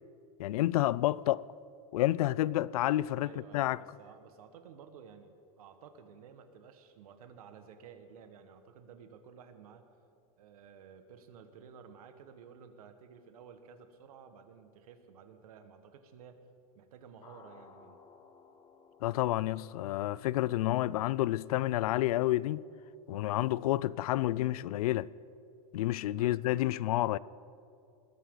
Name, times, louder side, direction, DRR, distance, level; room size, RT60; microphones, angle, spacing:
voice 1, 0.4-1.4 1.9-3.8 19.0-22.6 23.1-25.1 25.7-27.2, left 15 dB, 90° left, 0.5 m, -29 dB
voice 2, 3.2-9.9 10.4-16.4 16.7-18.0 26.1-26.4, right 7 dB, 90° right, 1.6 m, -53 dB
sound 1, 8.1-11.9 13.3-13.4 17.2-20.8, left 5 dB, 25° left, 1.0 m, -60 dB
21.0 x 15.0 x 4.0 m
supercardioid pair, 170°, 18 cm